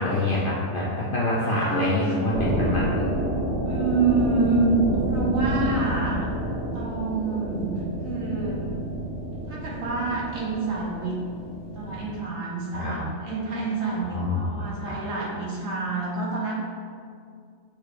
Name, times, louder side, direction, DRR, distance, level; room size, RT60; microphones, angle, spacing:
voice 1, 0.0-2.9 12.7-12.9 14.0-15.0, left 2 dB, 60° left, -6 dB, 0.5 m, -26 dB
voice 2, 1.4-2.2 3.6-6.3 6.7-7.7 8.0-8.7 9.5-11.2 11.7-16.5, right 3 dB, 75° right, -4 dB, 1.2 m, -27 dB
sound 1, 2.3-12.2, right 1 dB, 55° right, 1.3 m, -29 dB
5.7 x 3.2 x 2.5 m, 2.3 s
omnidirectional pair, 1.5 m